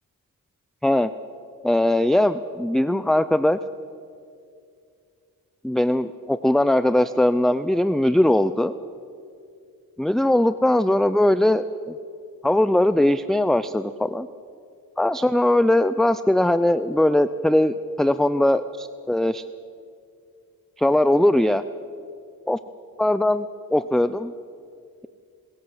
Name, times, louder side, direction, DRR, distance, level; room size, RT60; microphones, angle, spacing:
voice 1, 1.6-3.6 5.6-8.7 10.0-12.0 12.4-14.3 15.0-19.5 20.8-21.6 22.5-22.6 23.0-24.3, left 1 dB, ahead, 13 dB, 0.5 m, -20 dB
24.5 x 14.0 x 7.9 m, 2.4 s
cardioid pair, 60°, 35 cm